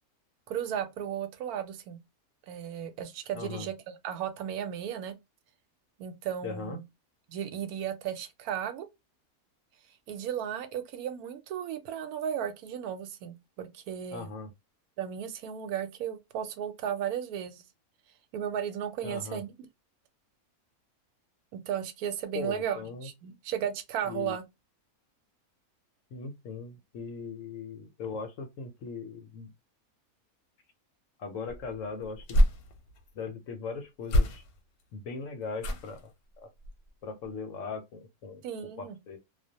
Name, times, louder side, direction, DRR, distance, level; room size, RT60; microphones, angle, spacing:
voice 1, 0.5-2.0 2.5-5.1 6.0-6.8 7.3-8.9 10.1-14.3 15.0-17.6 18.3-19.5 21.5-24.4 38.4-39.0, right 9 dB, 80° right, 1.1 m, -35 dB
voice 2, 3.3-3.7 6.4-6.8 14.1-14.5 19.0-19.4 22.3-23.1 24.1-24.4 26.1-29.5 31.2-32.5 33.1-34.4 34.9-36.5 37.0-38.4 38.8-39.2, left 5 dB, 70° left, 0.8 m, -39 dB
sound 1, 31.5-33.1 34.0-34.8 35.6-36.1 36.6-36.9 37.2-37.3, equal, 85° left, 1.1 m, -28 dB
2.4 x 2.1 x 2.7 m
omnidirectional pair, 1.5 m